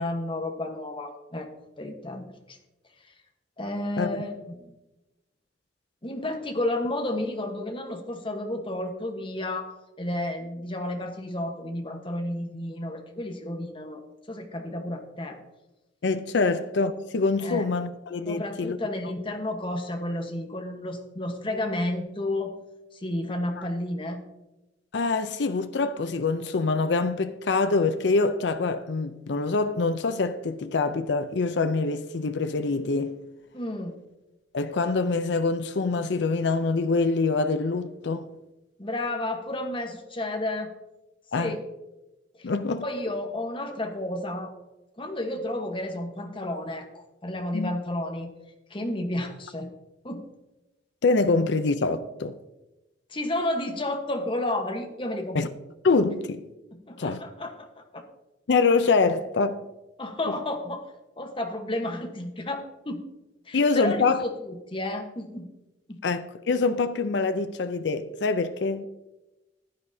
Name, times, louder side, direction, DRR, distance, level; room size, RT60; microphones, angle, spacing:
voice 1, 0.0-1.5 1.8-2.6 3.0-3.1 3.6-4.7 6.0-14.0 14.3-15.4 17.4-17.6 18.3-22.5 22.9-24.2 33.5-34.0 38.8-40.7 41.4-41.6 42.3-42.5 42.8-44.5 45.0-48.3 48.7-49.7 50.0-50.3 53.1-55.5 56.9-58.0 60.0-60.9 61.2-63.1 63.5-65.5 65.9-66.0, left 1 dB, 30° left, 1.2 m, -31 dB
voice 2, 16.0-18.8 23.6-23.7 24.9-33.2 34.5-38.3 41.3-41.6 42.4-42.8 47.5-47.7 51.0-52.4 55.3-55.5 55.8-56.4 57.0-57.2 58.5-59.7 63.5-64.2 66.0-68.8, left 3 dB, 70° left, 0.5 m, -25 dB
15.5 x 9.9 x 2.7 m
head